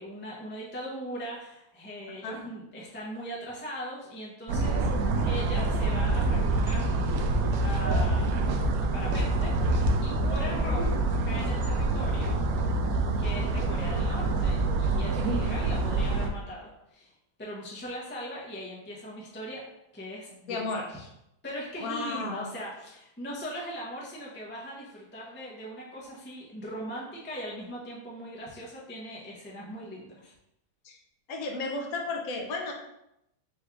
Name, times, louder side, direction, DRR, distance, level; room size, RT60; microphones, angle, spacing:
voice 1, 0.0-4.9 5.2-6.9 7.6-8.6 8.9-9.6 10.0-12.3 13.2-17.1 17.4-21.1 21.4-30.3, equal, 15° left, -5 dB, 0.4 m, -39 dB
sound 1, 4.5-16.3, right 2 dB, 70° right, 0.9 m, -26 dB
voice 2, 20.5-20.8 21.8-22.5 30.8-31.0 31.3-32.7, left 3 dB, 65° left, 2 dB, 1.2 m, -33 dB
4.2 x 2.4 x 4.5 m, 0.82 s
omnidirectional pair, 1.8 m